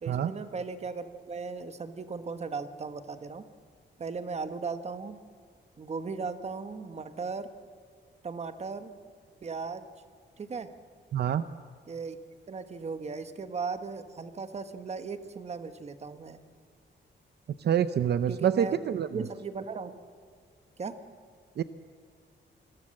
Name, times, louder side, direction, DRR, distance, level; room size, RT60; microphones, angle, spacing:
voice 1, 0.0-3.4 4.0-5.2 5.8-7.5 8.2-8.9 9.4-9.9 10.4-10.7 11.9-12.2 12.5-16.4 18.3-18.8 19.1-19.9 20.8-20.9, right 4 dB, 35° right, 9 dB, 1.3 m, -37 dB
voice 2, 11.1-11.4 17.6-19.3 21.6-21.7, right 9 dB, 65° right, 12 dB, 0.7 m, -27 dB
28.5 x 21.5 x 7.7 m, 2.1 s
wide cardioid pair, 175°, 19 cm